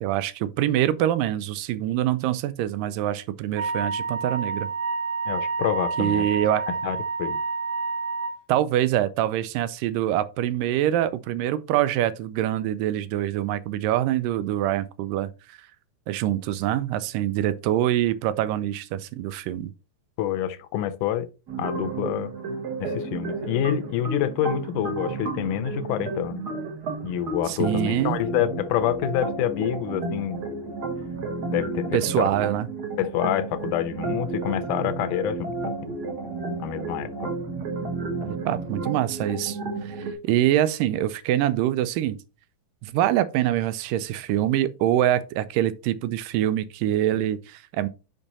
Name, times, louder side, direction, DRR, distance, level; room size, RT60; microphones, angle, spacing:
voice 1, 0.0-4.7 6.0-6.6 8.5-15.3 16.1-19.7 27.5-28.2 31.9-32.7 38.2-42.2 42.8-47.9, right 12 dB, 90° right, 2.3 m, -25 dB
Wind instrument woodwind instrument, 3.6-8.4, right 4 dB, 70° right, 1.7 m, -29 dB
voice 2, 5.3-6.3 6.7-7.4 20.2-21.3 21.6-22.3 22.8-26.4 27.0-30.4 31.5-32.3 33.0-36.0 36.6-37.3, left 11 dB, 80° left, 2.1 m, -27 dB
sound 1, 21.5-40.1, right 3 dB, 50° right, 1.1 m, -32 dB
6.0 x 5.4 x 4.1 m
omnidirectional pair, 3.8 m